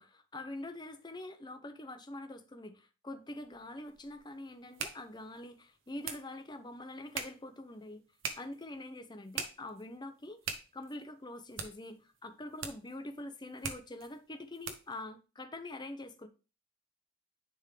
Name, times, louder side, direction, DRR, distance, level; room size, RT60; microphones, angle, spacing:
voice 1, 0.0-8.0 8.3-16.3, left 1 dB, 20° left, 0.7 m, -45 dB
sound 1, 3.4-15.0, right 6 dB, 70° right, 1.0 m, -45 dB
10.5 x 3.7 x 3.3 m
head